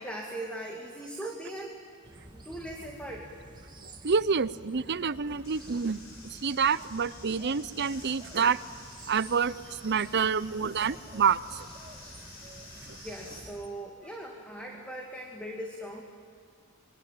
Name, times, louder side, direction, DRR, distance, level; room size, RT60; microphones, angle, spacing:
voice 1, 0.0-1.8 2.3-3.2 13.0-16.0, right 1 dB, 5° left, 0 dB, 2.4 m, -39 dB
sound 1, 2.0-13.7, right 2 dB, 20° right, 1.7 m, -50 dB
voice 2, 4.0-8.6 9.1-11.7 12.9-13.0, right 6 dB, 50° right, 17 dB, 0.7 m, -28 dB
sound 2, 5.4-13.4, left 2 dB, 90° left, 7.5 m, -51 dB
27.0 x 23.5 x 9.2 m, 2.2 s
head